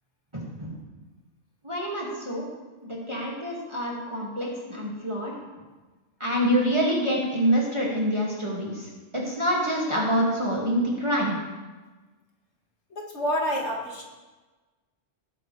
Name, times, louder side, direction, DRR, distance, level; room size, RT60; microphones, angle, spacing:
voice 1, 0.3-0.8 1.6-2.5 2.9-5.3 6.2-11.4, equal, 25° right, -5 dB, 2.4 m, -26 dB
voice 2, 12.9-14.0, equal, 60° left, -1 dB, 2.3 m, -28 dB
18.5 x 9.2 x 3.4 m, 1.2 s
omnidirectional pair, 1.3 m